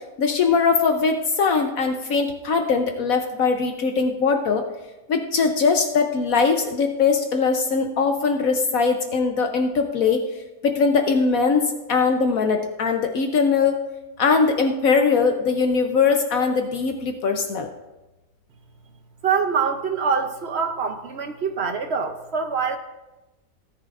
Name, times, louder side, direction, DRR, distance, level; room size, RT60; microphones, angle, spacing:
voice 1, 0.2-4.6 5.1-10.2 10.6-13.8 14.2-17.7, left 5 dB, 65° left, 5 dB, 1.1 m, -21 dB
voice 2, 19.2-22.8, right 5 dB, 55° right, 7 dB, 0.8 m, -24 dB
17.5 x 9.8 x 2.5 m, 1.1 s
omnidirectional pair, 1.7 m